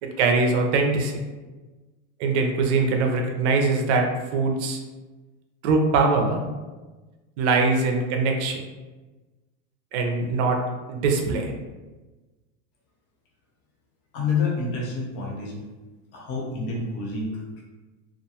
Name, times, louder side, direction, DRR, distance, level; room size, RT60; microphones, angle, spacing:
voice 1, 0.0-1.2 2.2-4.1 4.3-4.8 5.6-6.4 7.4-8.6 9.9-10.6 10.9-11.5, right 3 dB, 60° right, 3 dB, 0.5 m, -22 dB
voice 2, 14.1-15.6 16.1-17.6, left 4 dB, 40° left, -2 dB, 0.6 m, -28 dB
2.3 x 2.2 x 2.7 m, 1.2 s
supercardioid pair, 170°, 39 cm